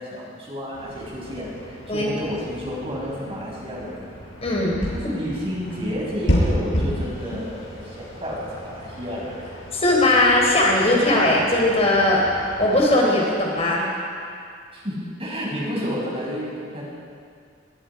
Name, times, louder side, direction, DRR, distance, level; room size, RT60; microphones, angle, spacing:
voice 1, 0.0-4.1 4.9-9.5 14.7-16.9, equal, 30° right, -4 dB, 6.9 m, -31 dB
sound 1, 0.7-13.0, equal, 85° left, 6.5 m, -31 dB
voice 2, 4.4-4.8 9.7-12.2 12.6-13.8, left 1 dB, 35° left, -2 dB, 4.2 m, -19 dB
25.0 x 22.0 x 5.1 m, 2.2 s
head